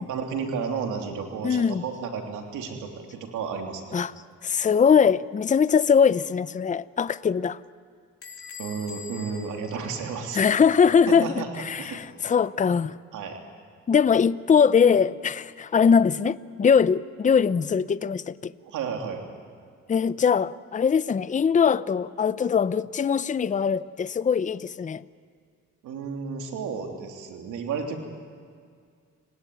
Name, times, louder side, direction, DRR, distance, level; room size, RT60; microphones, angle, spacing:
voice 1, 0.1-4.0 8.6-10.4 11.1-11.5 11.8-12.0 13.1-13.4 18.6-19.2 25.8-28.0, right 5 dB, 85° right, 3.1 m, -32 dB
voice 2, 1.4-1.8 3.9-4.1 4.4-7.6 10.3-13.0 13.9-18.5 19.9-25.0, left 6 dB, 25° left, 0.6 m, -21 dB
Bell / Squeak, 8.2-10.7, left 6 dB, 50° left, 3.4 m, -44 dB
29.0 x 17.5 x 9.4 m
cardioid pair, 90°, 30 cm